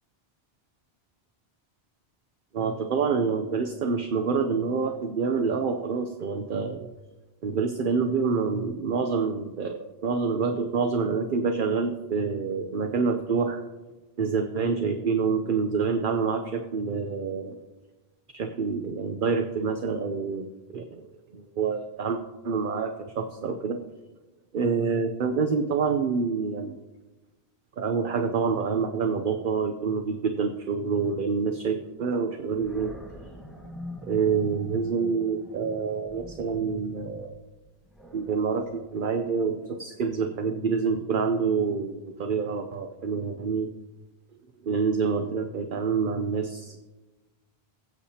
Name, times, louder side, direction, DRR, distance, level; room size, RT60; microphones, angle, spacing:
voice 1, 2.5-6.8 7.4-13.6 14.2-17.5 18.3-21.1 21.3-22.2 22.4-23.8 24.5-26.8 27.8-32.9 34.1-37.4 38.1-43.7 44.4-46.8, right 5 dB, 55° right, 6 dB, 0.9 m, -27 dB
Animal, 32.5-39.7, left 1 dB, ahead, 1.2 m, -45 dB
21.5 x 8.4 x 2.8 m, 1.2 s
omnidirectional pair, 1.1 m